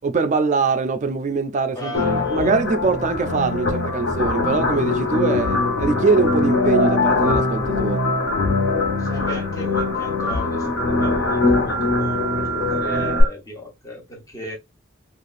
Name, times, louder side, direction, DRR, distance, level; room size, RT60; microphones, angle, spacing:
voice 1, 0.0-8.0, right 4 dB, 35° right, 0.3 m, -22 dB
voice 2, 1.7-2.5 9.0-14.5, left 1 dB, 15° left, 1.0 m, -35 dB
sound 1, 1.9-13.2, left 3 dB, 75° left, 0.9 m, -22 dB
sound 2, 6.3-6.5 7.3-7.5 8.3-8.5 9.3-9.5 9.8-10.0 10.3-10.5 10.8-13.3, right 7 dB, 40° left, 0.7 m, -30 dB
3.3 x 2.4 x 2.4 m
head